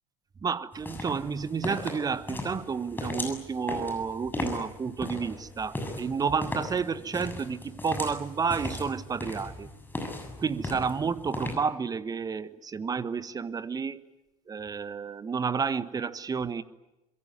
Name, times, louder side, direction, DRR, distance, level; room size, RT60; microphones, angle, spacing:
voice 1, 0.4-9.7 10.4-14.0 14.5-16.6, right 5 dB, 20° right, 14 dB, 1.3 m, -31 dB
sound 1, 0.7-11.5, left 2 dB, 10° left, 7.3 m, -37 dB
25.5 x 22.5 x 9.5 m, 0.98 s
figure-of-eight pair, 75°, 18 cm